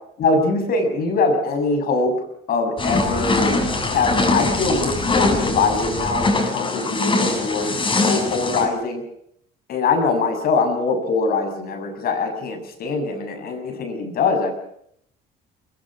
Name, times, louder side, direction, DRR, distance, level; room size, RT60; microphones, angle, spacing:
voice 1, 0.2-9.0 9.7-14.5, left 3 dB, 65° left, 5 dB, 7.2 m, -22 dB
sound 1, 2.8-8.7, left 3 dB, 30° left, 7.2 m, -22 dB
22.5 x 21.5 x 6.2 m, 0.69 s
cardioid pair, 110°, 17 cm